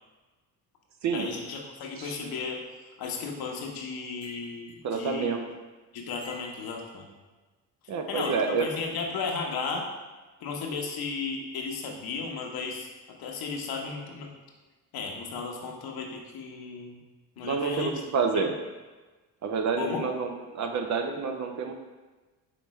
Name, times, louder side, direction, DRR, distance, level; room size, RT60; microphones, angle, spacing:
voice 1, 1.1-2.6 3.0-5.4 5.9-7.1 8.1-9.9 10.4-12.9 13.2-14.3 14.9-17.0 17.4-17.9 18.3-18.4 19.8-20.0, left 4 dB, 65° left, 1 dB, 1.0 m, -34 dB
sound 1, 4.2-4.8 6.2-6.9 8.2-8.8, left 1 dB, 85° right, 1.1 m, -51 dB
voice 2, 4.8-5.4 7.9-8.7 17.4-18.5 19.4-21.7, right 5 dB, 45° right, 5 dB, 0.6 m, -28 dB
5.1 x 3.3 x 3.1 m, 1.2 s
supercardioid pair, 80°, 40 cm